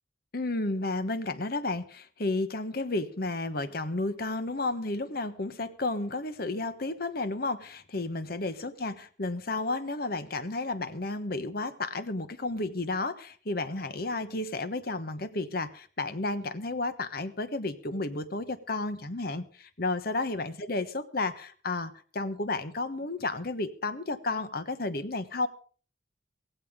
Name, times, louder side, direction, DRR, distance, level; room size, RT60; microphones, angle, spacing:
voice 1, 0.3-25.5, left 2 dB, 55° left, 12 dB, 1.1 m, -32 dB
16.5 x 16.0 x 3.7 m, 0.42 s
head